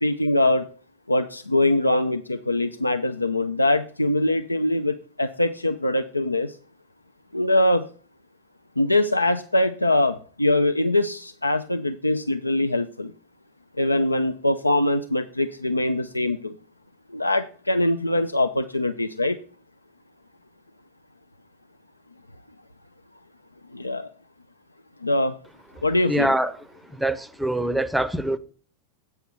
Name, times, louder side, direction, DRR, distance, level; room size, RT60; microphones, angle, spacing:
voice 1, 0.0-0.7 1.1-6.6 7.3-7.8 8.8-13.1 13.8-16.5 17.1-19.4 23.7-24.1 25.0-25.3 25.8-26.3, left 1 dB, 85° left, 0.4 m, -23 dB
voice 2, 26.1-26.5 26.9-28.4, right 1 dB, 5° right, 0.6 m, -24 dB
8.3 x 5.6 x 6.2 m
figure-of-eight pair, 90°, 0 cm